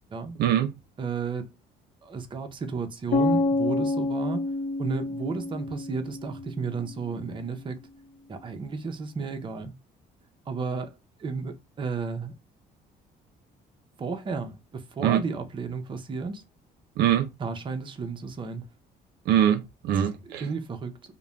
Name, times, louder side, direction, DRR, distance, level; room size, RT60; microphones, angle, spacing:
voice 1, 0.4-0.7 15.0-15.2 17.0-17.3 19.3-20.4, right 10 dB, 75° right, 0.5 m, -23 dB
voice 2, 1.0-1.6 2.0-4.4 4.8-7.8 8.3-9.8 10.5-12.3 14.0-16.4 17.4-18.6 20.0-21.2, right 4 dB, 30° right, 0.6 m, -33 dB
sound 1, 3.1-7.0, left 3 dB, 50° left, 0.7 m, -28 dB
2.4 x 2.1 x 3.0 m
cardioid pair, 110°, 17 cm